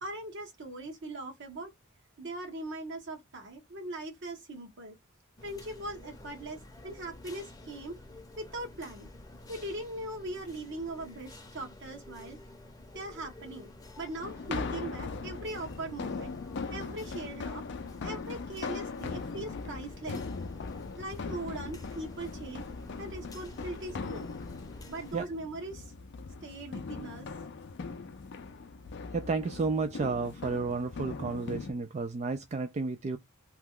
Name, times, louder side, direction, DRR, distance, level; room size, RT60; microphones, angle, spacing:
voice 1, 0.0-1.7 2.2-5.0 5.4-7.9 8.4-9.1 9.5-12.4 12.9-13.7 14.0-16.3 16.7-17.6 18.0-20.2 21.0-24.3 24.9-25.9 26.4-27.3, right 2 dB, 60° right, 1.2 m, -40 dB
sound 1, 5.4-25.2, left 1 dB, 20° left, 0.7 m, -50 dB
sound 2, 14.2-31.7, left 4 dB, 55° left, 0.5 m, -40 dB
voice 2, 29.1-33.2, right 4 dB, 35° right, 0.3 m, -32 dB
2.9 x 2.2 x 3.7 m
head